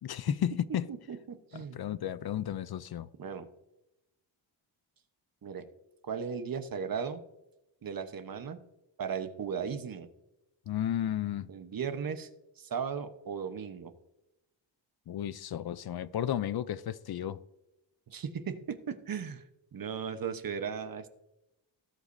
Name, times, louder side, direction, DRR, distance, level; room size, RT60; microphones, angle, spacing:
voice 1, 0.0-0.9 1.5-3.1 10.7-11.5 15.1-17.4, left 10 dB, 55° left, 0.5 m, -33 dB
voice 2, 0.7-1.8 3.2-3.5 5.4-5.6 6.0-7.2 7.8-8.6 9.0-10.1 11.5-12.3 12.6-13.9 18.1-19.4 19.7-21.1, right 6 dB, 50° right, 0.9 m, -36 dB
18.0 x 8.3 x 2.6 m
wide cardioid pair, 150°, 46 cm